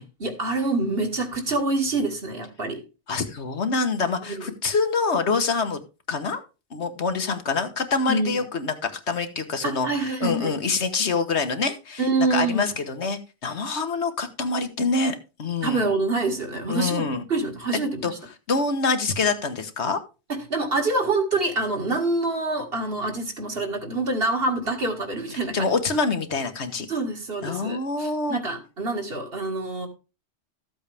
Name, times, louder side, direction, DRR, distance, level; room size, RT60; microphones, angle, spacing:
voice 1, 0.0-2.8 4.3-4.4 8.1-8.3 9.6-10.5 12.0-12.7 15.6-18.1 20.3-25.7 26.9-29.9, right 2 dB, 55° right, 3 dB, 2.3 m, -26 dB
voice 2, 3.1-5.8 6.1-6.4 6.7-12.0 12.3-15.9 16.7-17.2 18.0-18.1 18.5-20.0 25.5-26.9 27.4-28.4, left 4 dB, 70° left, 8 dB, 1.5 m, -26 dB
14.0 x 7.9 x 3.4 m, 0.30 s
omnidirectional pair, 1.2 m